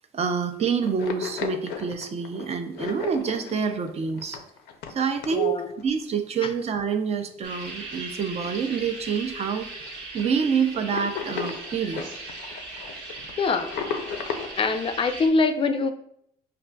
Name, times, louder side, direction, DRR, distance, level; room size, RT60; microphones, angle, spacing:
voice 1, 0.1-4.4 4.9-9.7 10.1-12.1, right 6 dB, 40° right, 7 dB, 0.5 m, -27 dB
sound 1, 0.8-5.8 6.2-6.4 7.1-7.2 7.6-7.7 8.1-8.6 8.9-9.0 9.3-9.4 9.8-10.2 10.7-14.5, left 6 dB, 80° left, 0.5 m, -35 dB
voice 2, 5.3-5.7 13.4-13.7 14.5-15.9, left 4 dB, 30° left, 8 dB, 0.4 m, -23 dB
sound 2, 7.4-15.3, right 2 dB, 90° right, 1.2 m, -39 dB
5.7 x 2.5 x 2.2 m, 0.71 s
cardioid pair, 110°, 17 cm